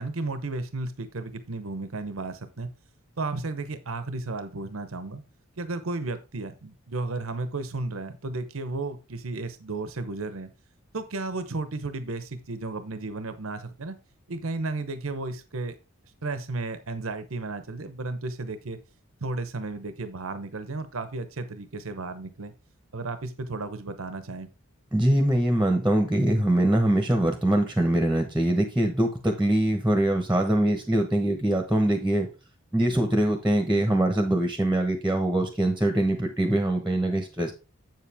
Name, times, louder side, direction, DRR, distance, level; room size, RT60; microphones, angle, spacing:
voice 1, 0.0-2.7 3.2-5.2 5.6-10.5 10.9-13.9 14.3-15.7 16.2-18.8 19.2-22.5 22.9-24.5, right 3 dB, 75° right, 10 dB, 0.9 m, -33 dB
voice 2, 24.9-32.3 32.7-37.5, right 1 dB, 5° right, 5 dB, 1.1 m, -23 dB
7.7 x 7.5 x 3.5 m, 0.29 s
head